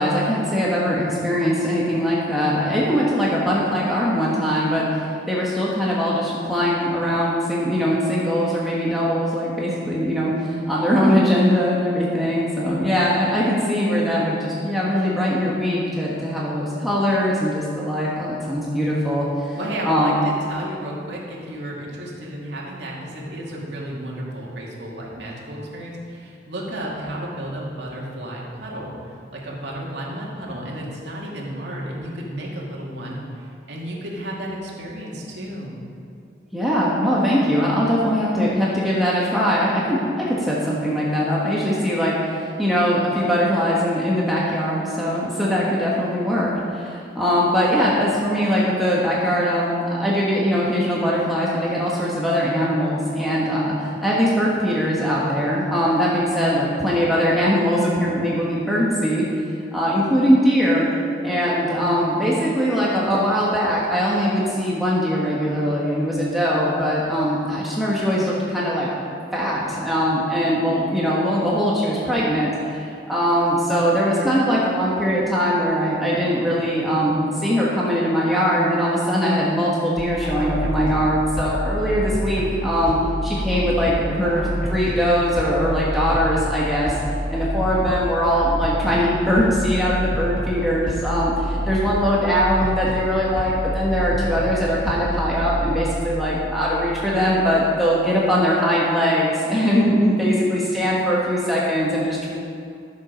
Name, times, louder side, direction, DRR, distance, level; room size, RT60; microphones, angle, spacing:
voice 1, 0.0-19.6 19.8-20.2 36.5-59.3 59.7-60.9 61.2-68.9 69.3-83.0 83.2-87.0 87.3-102.3, equal, ahead, -7 dB, 1.3 m, -21 dB
voice 2, 19.5-35.7, right 1 dB, 75° right, -4 dB, 2.3 m, -32 dB
sound 1, 80.0-97.6, equal, 50° left, 2.0 m, -28 dB
13.0 x 7.4 x 5.1 m, 2.5 s
head